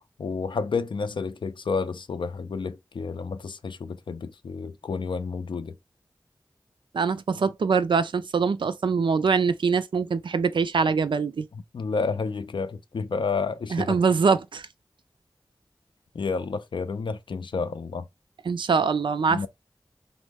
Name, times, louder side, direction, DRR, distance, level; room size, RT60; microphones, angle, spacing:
voice 1, 0.0-5.8 11.7-14.0 16.1-18.1 19.3-19.5, left 4 dB, 85° left, 0.4 m, -30 dB
voice 2, 6.9-11.5 13.7-14.7 18.4-19.5, right 5 dB, 85° right, 0.4 m, -23 dB
3.1 x 2.0 x 3.4 m
wide cardioid pair, 45°, 8 cm